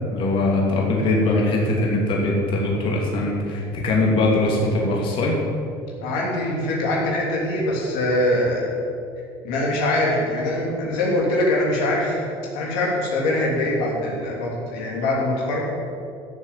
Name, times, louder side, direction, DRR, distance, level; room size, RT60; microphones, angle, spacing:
voice 1, 0.1-5.3, left 2 dB, 50° left, -3 dB, 3.1 m, -21 dB
voice 2, 6.0-8.8 9.4-12.3 12.5-15.6, left 1 dB, 85° left, -3 dB, 3.1 m, -23 dB
12.5 x 7.4 x 7.7 m, 2.5 s
cardioid pair, 125°, 11 cm